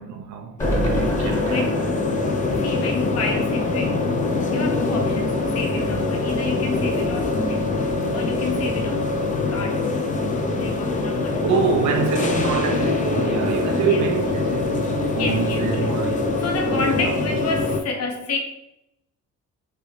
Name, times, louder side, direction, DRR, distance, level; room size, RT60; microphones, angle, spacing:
voice 1, 0.0-1.7 10.9-11.0 11.4-17.2, right 5 dB, 70° right, 0.7 m, -26 dB
sound 1, 0.6-17.8, left 3 dB, 25° left, 0.5 m, -23 dB
sound 2, 0.6-3.8 4.2-4.3 4.5-4.6, right 2 dB, 10° left, 0.9 m, -30 dB
voice 2, 1.2-1.8 2.6-4.0 4.5-7.7 8.1-9.2 9.5-9.9 10.6-11.4 13.9-14.0 15.2-18.4, left 3 dB, 55° left, 0.7 m, -29 dB
3.4 x 2.8 x 2.8 m
cardioid pair, 90°, 30 cm